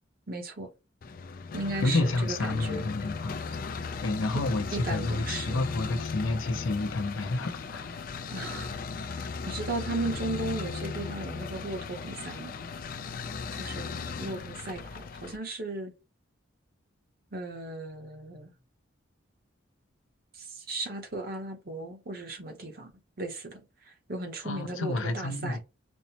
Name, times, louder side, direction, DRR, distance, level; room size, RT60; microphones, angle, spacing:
voice 1, 0.3-0.7 1.5-2.8 4.3-4.4 4.7-5.6 8.3-8.8 9.1-12.6 13.5-15.9 17.3-18.5 20.3-22.9 23.2-25.6, right 2 dB, 50° right, 0.8 m, -36 dB
sound 1, 1.0-15.4, left 5 dB, 45° left, 0.4 m, -37 dB
voice 2, 1.8-3.4 4.0-7.9 24.4-25.6, left 2 dB, 85° left, 0.6 m, -30 dB
5.3 x 2.1 x 2.8 m
head